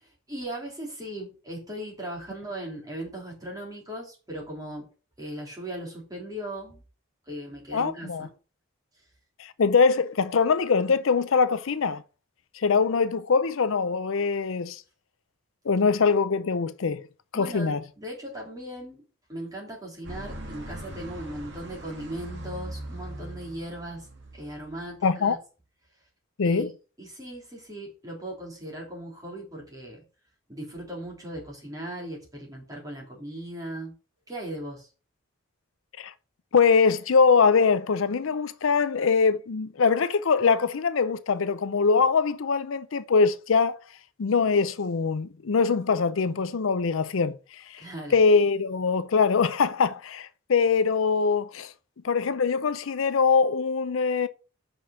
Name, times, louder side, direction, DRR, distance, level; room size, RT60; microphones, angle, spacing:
voice 1, 0.3-4.9 5.2-6.8 7.3-8.3 17.3-19.0 19.3-24.1 24.3-25.4 26.4-26.6 27.0-30.0 30.5-33.9 34.3-34.9 47.8-48.2, right 1 dB, 15° right, 3.3 m, -38 dB
voice 2, 7.7-8.3 9.4-12.0 12.5-14.8 15.7-17.0 17.3-17.8 25.0-25.4 26.4-26.7 36.0-36.1 36.5-43.8 44.2-47.8 48.1-51.7 52.0-54.3, left 5 dB, 75° left, 0.5 m, -23 dB
sound 1, 20.0-25.1, right 1 dB, 55° right, 1.8 m, -40 dB
5.9 x 5.3 x 6.4 m
head